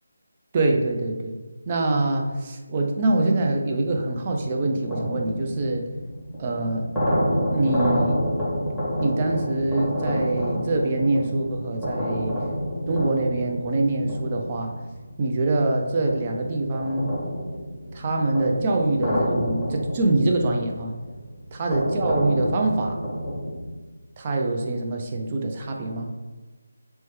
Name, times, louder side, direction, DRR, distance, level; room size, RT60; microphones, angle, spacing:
voice 1, 0.5-1.4 1.7-5.8 6.4-6.9 7.5-8.2 9.0-12.4 12.9-14.7 15.2-17.1 17.9-20.9 21.5-23.0 24.2-26.1, right 2 dB, 30° right, 1 dB, 0.4 m, -24 dB
sound 1, 4.0-15.6 16.1-23.8, equal, ahead, 0.9 m, -29 dB
3.0 x 2.2 x 3.1 m, 1.3 s
figure-of-eight pair, 160°, 0 cm